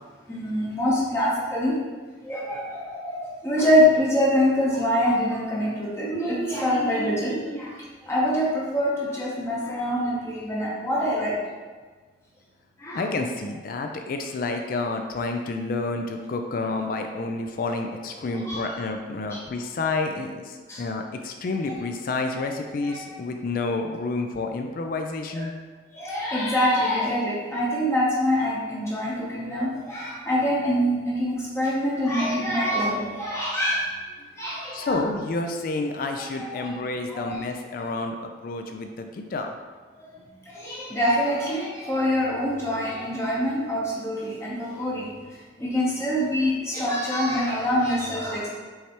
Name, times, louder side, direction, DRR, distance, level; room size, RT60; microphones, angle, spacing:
voice 1, 0.3-1.8 2.2-7.8 8.0-11.4 12.8-13.1 18.3-18.8 19.3-19.4 20.7-20.8 21.6-21.7 22.3-22.4 22.8-23.0 25.3-25.5 25.9-33.9 34.4-35.0 36.4-36.8 37.1-37.4 37.8-37.9 40.0-45.1 45.6-48.6, equal, 15° left, -6 dB, 0.7 m, -25 dB
voice 2, 12.9-25.5 34.7-39.6, left 3 dB, 50° left, 4 dB, 0.3 m, -29 dB
5.5 x 3.3 x 2.9 m, 1.4 s
head